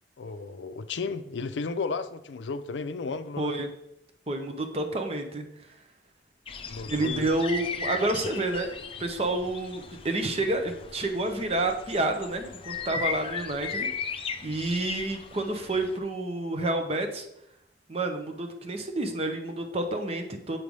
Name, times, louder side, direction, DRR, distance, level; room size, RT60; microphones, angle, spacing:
voice 1, 0.2-3.5 6.7-7.3, left 4 dB, 90° left, 0.5 m, -34 dB
voice 2, 3.4-3.7 4.3-5.4 6.9-8.7 9.0-13.9 14.4-17.3 17.9-20.6, right 2 dB, 35° right, 0.8 m, -29 dB
sound 1, 6.5-16.0, left 5 dB, 30° left, 0.5 m, -37 dB
7.5 x 3.2 x 5.3 m
head